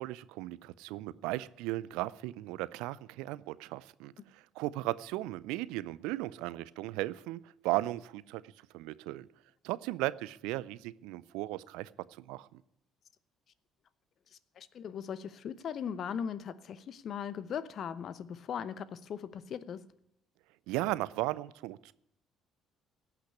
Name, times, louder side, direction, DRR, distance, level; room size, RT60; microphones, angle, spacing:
voice 1, 0.0-8.4 8.7-9.3 9.6-11.9 12.2-12.5 20.7-21.9, right 18 dB, 75° right, 0.4 m, -36 dB
voice 2, 14.6-19.9, left 8 dB, 55° left, 0.8 m, -39 dB
17.0 x 6.0 x 9.8 m
hypercardioid pair, 55°, 0 cm